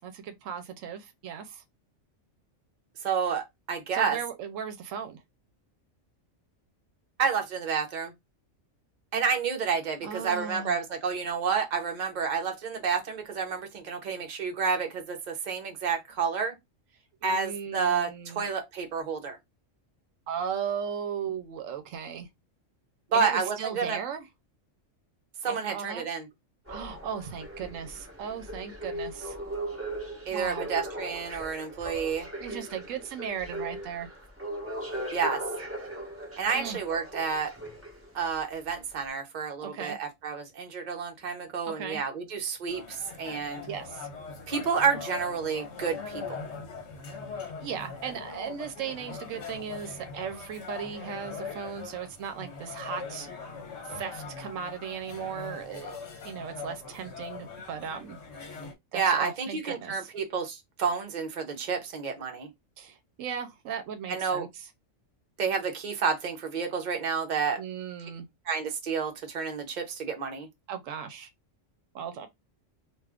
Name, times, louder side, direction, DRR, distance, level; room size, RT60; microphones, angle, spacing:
voice 1, 0.0-1.6 3.9-5.2 10.0-10.8 17.2-18.4 20.3-22.3 23.1-24.3 25.5-26.0 26.7-29.4 30.3-30.7 32.4-34.1 36.5-36.8 39.6-40.0 41.7-42.0 43.7-44.1 47.4-53.3 53.8-58.2 58.9-60.1 62.8-64.7 67.6-68.3 70.7-71.3 71.9-72.3, right 7 dB, 90° right, 1.0 m, -37 dB
voice 2, 3.0-4.2 7.2-8.1 9.1-16.6 17.2-19.4 23.1-24.0 25.4-26.3 30.3-32.3 35.1-35.4 36.4-37.5 38.1-43.7 44.5-46.4 58.9-62.5 64.1-64.5 65.4-67.6 68.5-70.5, right 6 dB, 45° right, 0.8 m, -30 dB
sound 1, 26.7-38.3 38.9-39.0, right 1 dB, 15° right, 0.8 m, -39 dB
sound 2, 42.7-58.7, left 5 dB, 65° left, 1.0 m, -41 dB
2.5 x 2.3 x 3.3 m
omnidirectional pair, 1.3 m